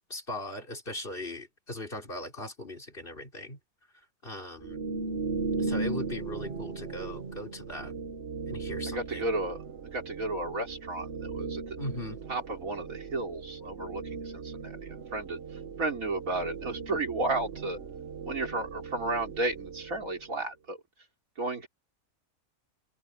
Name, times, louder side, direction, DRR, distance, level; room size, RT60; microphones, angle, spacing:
voice 1, 0.1-3.6 4.2-4.8 5.6-7.9 8.5-9.2 11.8-12.2, left 1 dB, 40° left, 4.9 m, -39 dB
sound 1, 4.6-20.4, right 4 dB, 50° right, 1.4 m, -37 dB
voice 2, 8.8-9.6 9.9-11.8 12.3-17.8 18.3-20.8 21.4-21.7, right 2 dB, 80° right, 4.0 m, -33 dB
omnidirectional pair, 1.4 m